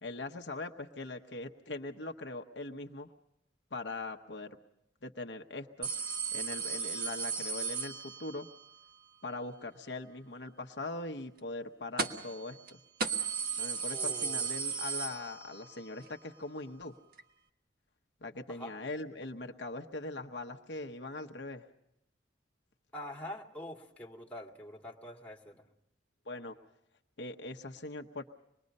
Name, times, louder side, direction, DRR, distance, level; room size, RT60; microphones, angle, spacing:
voice 1, 0.0-3.1 3.7-4.6 5.0-8.5 9.2-12.8 13.6-17.0 18.2-21.7 26.3-26.5 27.2-28.2, left 2 dB, 65° left, 4 dB, 1.0 m, -41 dB
sound 1, 5.8-8.5 12.0-12.4 12.7-12.8 13.0-15.7 16.1-16.2 17.2-17.3, right 6 dB, 50° right, 1.4 m, -35 dB
voice 2, 13.9-14.5 18.5-18.7 22.9-25.7, left 1 dB, 10° left, -1 dB, 2.1 m, -45 dB
26.0 x 21.0 x 5.4 m, 0.83 s
head